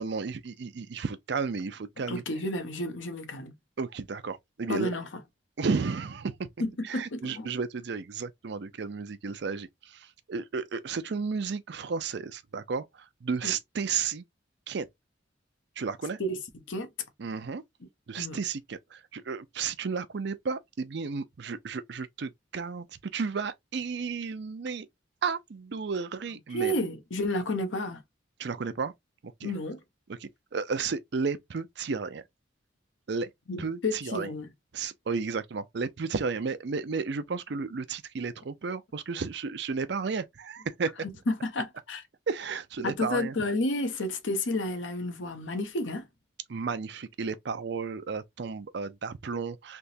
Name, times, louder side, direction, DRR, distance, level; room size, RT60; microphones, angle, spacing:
voice 1, 0.0-2.2 3.8-4.9 5.6-6.5 6.8-14.2 14.7-14.9 15.8-16.2 17.2-17.6 18.1-24.9 25.2-26.7 28.4-28.9 29.4-29.5 30.2-32.2 33.1-33.3 33.6-34.3 34.7-40.9 42.3-43.3 46.5-49.8, right 5 dB, 60° right, 0.5 m, -33 dB
voice 2, 2.0-3.5 4.7-5.2 6.6-7.5 13.4-13.5 16.2-16.4 16.7-16.9 18.2-18.4 26.5-28.0 29.4-29.8 33.5-34.5 41.0-42.0 42.8-46.1, left 1 dB, 75° left, 0.8 m, -31 dB
3.4 x 2.9 x 2.6 m
head